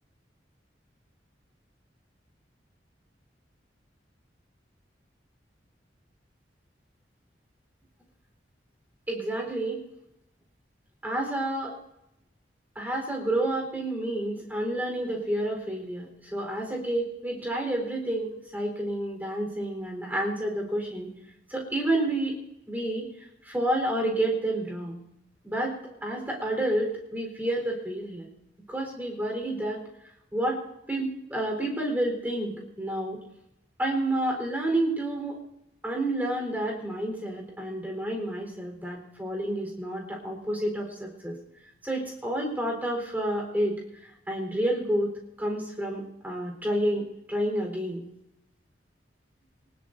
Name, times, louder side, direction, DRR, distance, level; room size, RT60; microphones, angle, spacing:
voice 1, 9.1-9.8 11.0-11.7 12.8-21.1 21.5-22.4 22.7-23.1 23.4-25.0 25.4-28.3 28.7-29.8 30.3-30.6 30.9-33.2 33.8-35.4 35.8-41.4 41.8-45.1 45.4-48.0, right 1 dB, 10° right, 0 dB, 4.1 m, -29 dB
24.0 x 19.5 x 2.7 m, 0.85 s
head